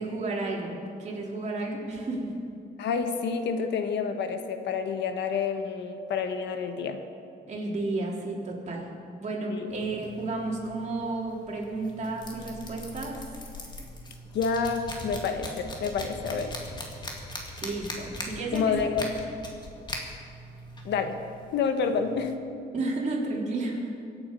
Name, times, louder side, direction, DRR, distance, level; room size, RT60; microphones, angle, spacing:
voice 1, 0.0-2.3 7.5-8.9 9.2-13.2 17.6-18.8 22.7-24.0, right 2 dB, 40° right, -3 dB, 3.5 m, -32 dB
voice 2, 2.8-7.0 9.5-9.7 14.3-16.5 18.5-19.1 20.8-21.2 21.5-22.6, left 5 dB, 90° left, 7 dB, 1.3 m, -29 dB
sound 1, 9.7-22.3, left 1 dB, 25° left, 2.3 m, -41 dB
24.5 x 8.8 x 5.5 m, 2.5 s
cardioid pair, 130°, 17 cm